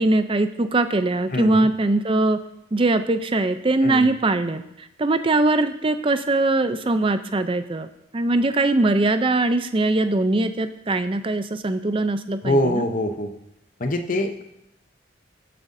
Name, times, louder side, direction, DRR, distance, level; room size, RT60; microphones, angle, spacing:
voice 1, 0.0-2.4 2.7-12.9, right 2 dB, 25° right, 10 dB, 0.5 m, -21 dB
voice 2, 1.3-1.7 3.8-4.1 12.4-13.3 13.8-14.4, left 1 dB, 45° left, 6 dB, 0.8 m, -23 dB
18.5 x 7.6 x 2.7 m, 0.82 s
head